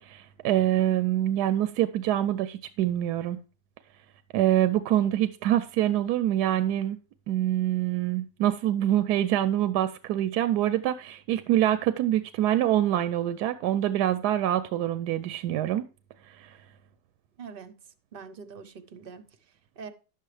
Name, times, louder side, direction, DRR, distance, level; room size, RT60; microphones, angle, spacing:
voice 1, 0.0-3.4 4.3-7.0 7.3-15.9 16.3-16.5, right 12 dB, 80° right, 1.1 m, -25 dB
voice 2, 17.4-17.8 18.1-19.9, right 5 dB, 50° right, 0.7 m, -44 dB
10.5 x 7.6 x 3.2 m
omnidirectional pair, 1.7 m